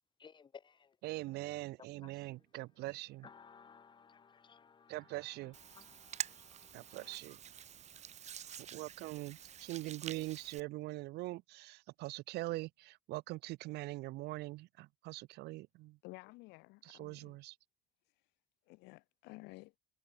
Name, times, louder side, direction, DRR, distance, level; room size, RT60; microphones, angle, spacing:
voice 1, 0.2-0.9 2.0-2.1 3.2-5.0 5.7-7.2, left 6 dB, 30° left, 0.7 m, -58 dB
voice 2, 1.0-3.3 4.9-5.6 6.7-7.4 8.7-16.0 16.8-17.6, right 19 dB, 80° right, 0.5 m, -43 dB
Hands, 5.5-10.6, right 9 dB, 40° right, 0.7 m, -47 dB
voice 3, 16.0-17.4 18.7-19.7, left 24 dB, 90° left, 0.4 m, -53 dB
cardioid pair, 110°, 17 cm